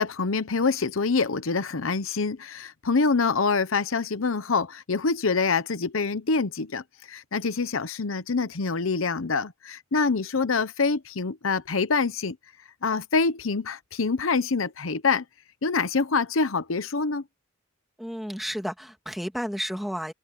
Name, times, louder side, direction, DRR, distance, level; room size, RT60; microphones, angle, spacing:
voice 1, 0.0-12.4 12.8-15.2 15.6-17.2, left 4 dB, 80° left, 0.9 m, -25 dB
voice 2, 18.0-20.1, equal, ahead, 2.2 m, -32 dB
head